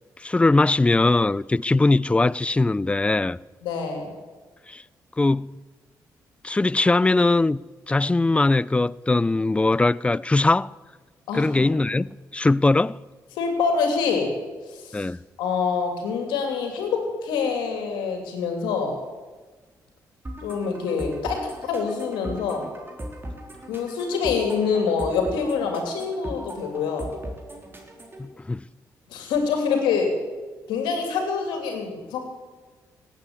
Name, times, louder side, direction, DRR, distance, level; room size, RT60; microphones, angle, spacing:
voice 1, 0.2-3.4 4.7-4.8 5.2-5.5 6.4-7.6 7.9-10.7 11.3-13.0 14.9-15.2 28.2-28.6, left 2 dB, 15° left, 0.4 m, -21 dB
voice 2, 3.6-4.1 11.3-11.6 13.3-14.3 14.7-15.1 15.4-18.9 20.4-22.6 23.7-27.1 29.1-30.1 30.7-32.2, left 5 dB, 90° left, 2.8 m, -25 dB
sound 1, 20.2-28.2, right 1 dB, 30° right, 3.6 m, -38 dB
18.0 x 8.7 x 8.3 m
supercardioid pair, 55°, 8 cm